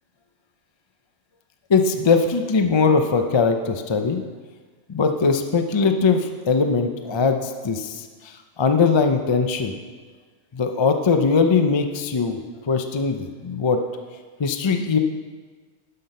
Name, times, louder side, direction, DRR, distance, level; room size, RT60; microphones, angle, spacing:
voice 1, 1.7-4.2 4.9-8.0 8.6-9.8 10.5-13.8 14.4-15.0, left 4 dB, 50° left, 6 dB, 0.3 m, -20 dB
12.0 x 5.9 x 5.4 m, 1.4 s
omnidirectional pair, 1.4 m